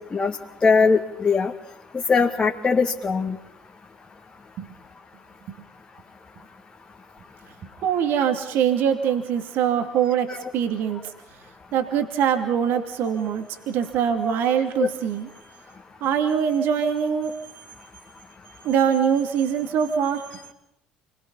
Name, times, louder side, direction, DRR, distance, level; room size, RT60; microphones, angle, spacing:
voice 1, 0.6-1.5 2.1-3.4 10.3-10.4 14.8-14.9, left 5 dB, 25° left, 0 dB, 2.2 m, -20 dB
voice 2, 7.8-11.0 11.7-15.3 16.0-17.3 18.6-20.2, right 8 dB, 55° right, 5 dB, 2.6 m, -23 dB
29.0 x 22.0 x 5.5 m, 0.82 s
figure-of-eight pair, 60°, 4 cm